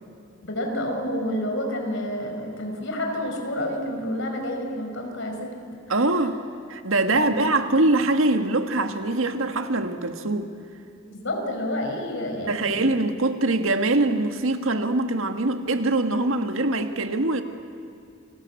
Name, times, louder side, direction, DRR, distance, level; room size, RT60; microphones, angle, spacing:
voice 1, 0.4-5.5 7.1-7.4 11.1-13.0, left 1 dB, 70° left, 3 dB, 5.0 m, -29 dB
voice 2, 5.9-6.4 6.7-10.5 12.5-17.4, right 2 dB, 85° right, 7 dB, 1.6 m, -23 dB
29.0 x 20.0 x 8.4 m, 2.6 s
head